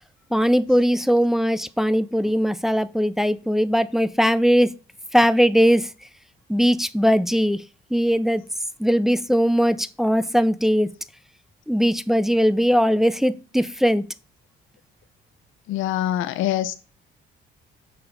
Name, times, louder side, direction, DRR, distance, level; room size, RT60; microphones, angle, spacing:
voice 1, 0.3-4.7 5.1-5.9 6.5-7.6 7.9-8.4 8.8-10.9 11.7-14.0, equal, ahead, 0.4 m, -20 dB
voice 2, 15.7-16.7, left 12 dB, 80° left, 0.5 m, -24 dB
6.2 x 4.7 x 3.8 m
cardioid pair, 90°, 20 cm